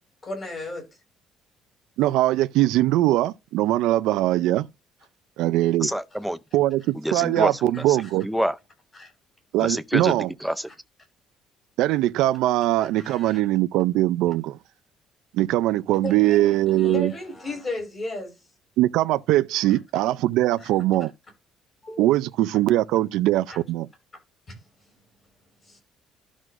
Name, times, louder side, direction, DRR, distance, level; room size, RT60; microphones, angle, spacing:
voice 1, 0.2-0.8 9.0-9.1 13.0-13.4 15.9-18.3 20.6-20.7 21.8-22.2 23.5-23.6 24.5-24.6 25.6-25.8, left 2 dB, 25° left, 6.4 m, -34 dB
voice 2, 2.0-4.7 5.4-5.9 6.5-8.3 9.5-10.3 11.8-14.6 15.3-17.1 18.8-21.1 22.0-23.9, right 15 dB, 85° right, 0.4 m, -21 dB
voice 3, 5.8-6.4 6.9-8.0 8.2-8.6 9.6-10.7, equal, ahead, 0.5 m, -27 dB
12.5 x 6.1 x 2.6 m
cardioid pair, 160°, 0 cm